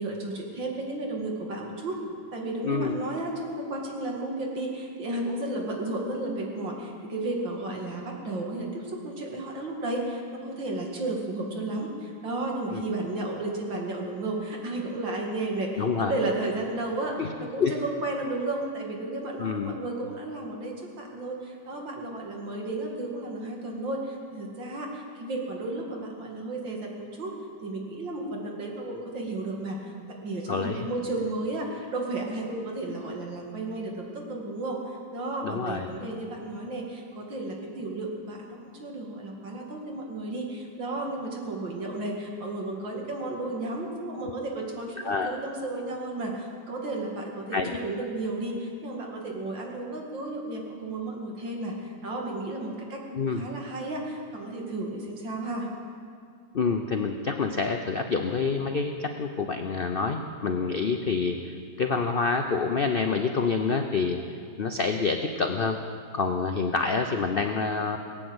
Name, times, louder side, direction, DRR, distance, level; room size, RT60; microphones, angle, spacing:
voice 1, 0.0-2.0 2.3-27.3 27.6-29.9 30.2-53.0 53.3-55.7, right 2 dB, 85° right, 0 dB, 2.9 m, -33 dB
voice 2, 15.8-16.1 17.2-17.3 17.6-17.7 19.4-19.8 30.5-30.9 35.4-35.9 45.0-45.4 47.5-47.8 53.1-53.5 56.5-64.2 64.6-65.8 66.1-68.0, left 4 dB, 70° left, 5 dB, 0.5 m, -27 dB
18.5 x 9.0 x 8.0 m, 2.2 s
omnidirectional pair, 2.0 m